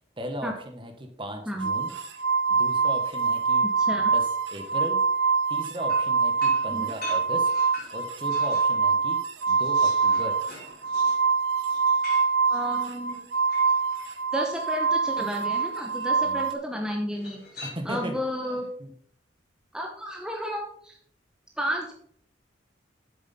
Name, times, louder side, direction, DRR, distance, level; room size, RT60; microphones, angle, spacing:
voice 1, 0.2-1.9 2.5-3.7 4.1-5.0 5.5-7.5 7.9-9.2 9.5-10.4 16.2-16.5 17.6-18.1 18.5-18.9, equal, 25° right, 6 dB, 1.2 m, -37 dB
sound 1, 1.6-16.5, right 5 dB, 70° right, 0.9 m, -25 dB
voice 2, 3.6-4.1 6.7-6.9 12.5-13.2 14.3-18.7 19.7-21.0 21.6-21.9, equal, 5° right, 1 dB, 0.9 m, -32 dB
sound 2, 5.9-8.8 9.1-14.2 15.2-15.8 17.1-18.2, left 2 dB, 60° left, 4.0 m, -45 dB
8.0 x 7.1 x 4.2 m, 0.62 s
head